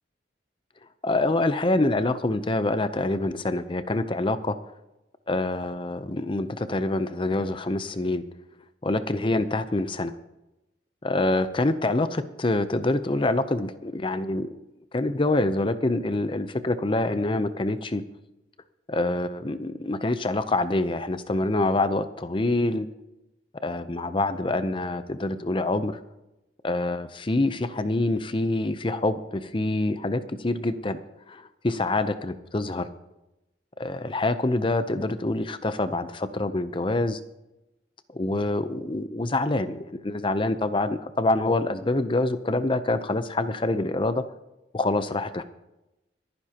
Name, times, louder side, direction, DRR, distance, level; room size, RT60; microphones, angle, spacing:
voice 1, 1.0-4.6 5.3-8.2 8.8-10.1 11.0-14.5 14.9-18.0 18.9-22.9 23.6-26.0 26.6-31.0 31.3-32.9 33.8-37.2 38.1-44.2 44.7-45.4, left 2 dB, 30° left, 11 dB, 0.6 m, -26 dB
26.0 x 9.7 x 2.9 m, 0.94 s
head